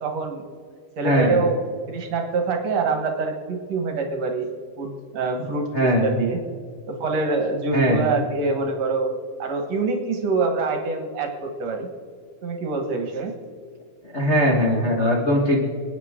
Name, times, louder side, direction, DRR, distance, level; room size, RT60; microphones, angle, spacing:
voice 1, 0.0-0.5 1.0-1.6 1.9-4.5 4.8-6.4 6.9-9.1 9.4-11.9 12.4-13.3, right 3 dB, 60° right, 4 dB, 2.4 m, -25 dB
voice 2, 1.0-1.4 5.7-6.1 7.7-8.1 14.1-15.6, equal, 35° left, -3 dB, 1.0 m, -20 dB
27.0 x 9.4 x 3.7 m, 2.2 s
omnidirectional pair, 3.7 m